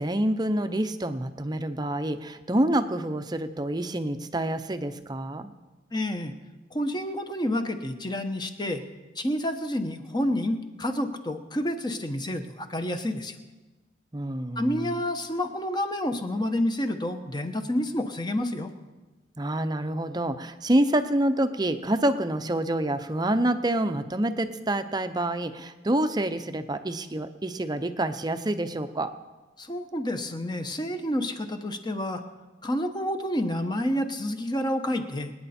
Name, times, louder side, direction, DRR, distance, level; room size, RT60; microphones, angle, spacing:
voice 1, 0.0-5.5 14.1-14.9 19.4-29.1, right 1 dB, 20° right, 9 dB, 0.7 m, -27 dB
voice 2, 5.9-6.3 6.7-8.8 9.1-13.3 14.6-18.7 29.6-32.2 32.6-35.3, left 1 dB, 25° left, 6 dB, 1.0 m, -29 dB
25.5 x 9.5 x 4.3 m, 1.2 s
head